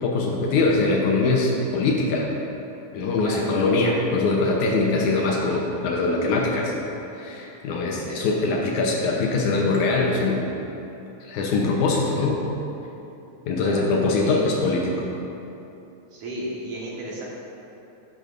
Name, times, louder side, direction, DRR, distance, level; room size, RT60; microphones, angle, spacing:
voice 1, 0.0-2.3 2.9-6.7 7.2-10.5 11.2-12.4 13.5-14.9, left 3 dB, 75° left, -2 dB, 1.8 m, -22 dB
voice 2, 16.1-17.2, right 1 dB, 60° right, -5 dB, 2.5 m, -33 dB
13.0 x 9.0 x 2.6 m, 2.9 s
omnidirectional pair, 4.5 m